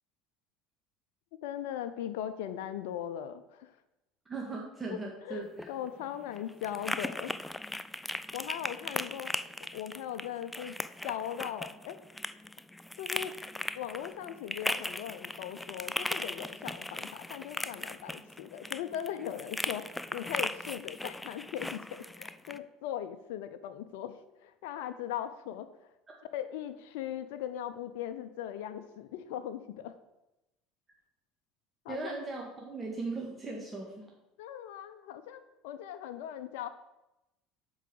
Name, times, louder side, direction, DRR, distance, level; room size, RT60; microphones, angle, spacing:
voice 1, 1.4-3.7 4.9-7.3 8.3-9.3 9.7-10.7 11.0-12.0 13.0-13.3 13.8-25.7 26.3-29.9 31.8-32.1 34.4-36.7, left 10 dB, 75° left, 9 dB, 0.5 m, -39 dB
voice 2, 4.3-5.7 31.9-34.1, right 3 dB, 20° right, -2 dB, 1.7 m, -38 dB
sound 1, 5.4-22.6, left 1 dB, 5° left, 0.4 m, -38 dB
7.4 x 4.8 x 7.0 m, 0.95 s
hypercardioid pair, 80°, 0 cm